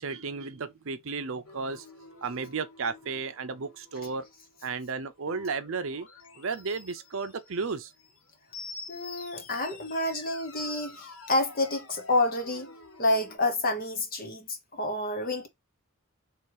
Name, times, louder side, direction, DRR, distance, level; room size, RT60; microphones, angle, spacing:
voice 1, 0.0-1.8 2.2-4.2 4.6-6.1 6.4-7.9, right 4 dB, 60° right, 0.6 m, -33 dB
sound 1, 1.4-13.4, left 3 dB, 70° left, 1.0 m, -48 dB
voice 2, 8.9-12.7 13.0-15.5, left 2 dB, 40° left, 0.9 m, -29 dB
3.1 x 2.9 x 4.6 m
head